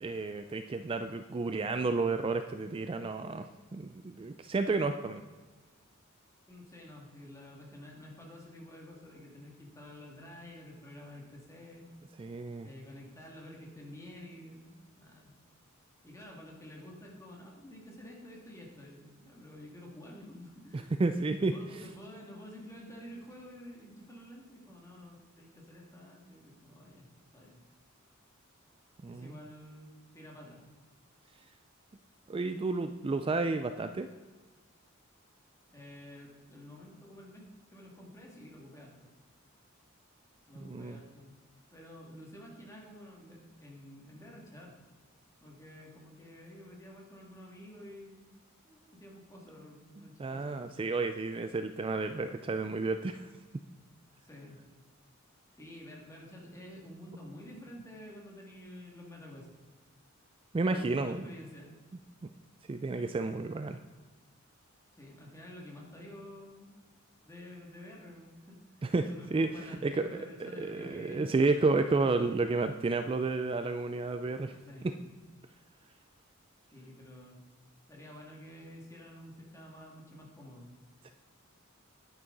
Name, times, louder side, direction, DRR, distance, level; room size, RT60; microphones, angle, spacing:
voice 1, 0.0-5.2 12.2-12.7 20.7-21.8 29.0-29.3 32.3-34.1 40.6-41.0 50.0-53.3 60.5-61.3 62.2-62.3 62.7-63.8 68.8-70.1 70.4-74.6 74.8-74.9 81.0-81.1, right 3 dB, 25° right, 9 dB, 0.3 m, -31 dB
voice 2, 6.5-11.9 12.6-15.3 16.0-20.9 21.4-27.6 29.1-30.6 35.7-39.1 40.5-41.3 41.7-44.8 45.4-48.3 48.6-50.6 54.1-54.6 55.5-59.5 60.6-61.7 64.9-66.7 67.2-68.6 69.1-71.2 74.7-75.0 76.7-77.4 77.9-80.7, left 1 dB, 15° left, -2 dB, 2.1 m, -50 dB
10.5 x 9.5 x 3.9 m, 1.3 s
head